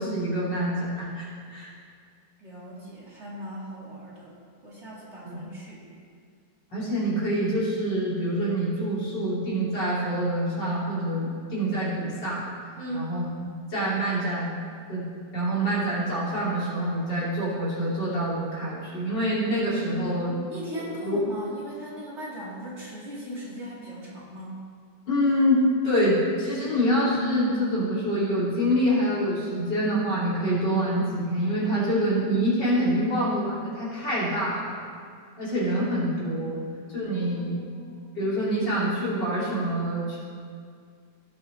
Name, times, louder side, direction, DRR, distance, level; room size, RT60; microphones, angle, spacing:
voice 1, 0.0-1.7 5.2-5.4 6.7-12.5 12.9-13.3 13.7-14.5 14.9-15.1 15.3-20.4 21.0-21.2 25.1-34.7 35.4-36.6 36.9-37.6 38.2-40.2, equal, 85° left, -8 dB, 3.6 m, -26 dB
voice 2, 2.4-4.3 4.6-5.8 12.7-13.2 20.5-24.6 37.2-38.0, equal, 40° right, -6 dB, 2.5 m, -38 dB
17.0 x 6.8 x 3.4 m, 2.2 s
omnidirectional pair, 1.9 m